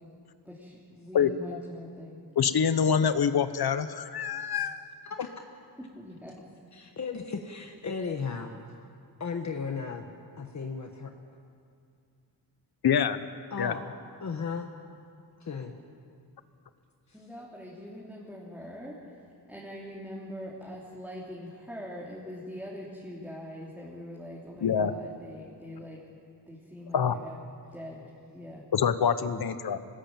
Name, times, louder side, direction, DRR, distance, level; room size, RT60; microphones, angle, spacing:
voice 1, 0.4-2.2 6.0-6.4 17.1-19.1 19.5-26.0 26.5-27.3 27.7-28.6, equal, 5° right, -6 dB, 3.3 m, -43 dB
voice 2, 1.1-1.6 2.4-4.8 12.8-13.2 13.6-13.7 24.6-24.9 26.9-27.1 28.7-29.8, left 7 dB, 65° left, 12 dB, 1.1 m, -25 dB
voice 3, 6.7-8.5 9.2-11.1 13.5-13.9 14.2-14.7 15.4-15.7 29.2-29.4, left 5 dB, 45° left, 3 dB, 1.3 m, -35 dB
25.0 x 19.5 x 8.9 m, 2.4 s
wide cardioid pair, 160°, 41 cm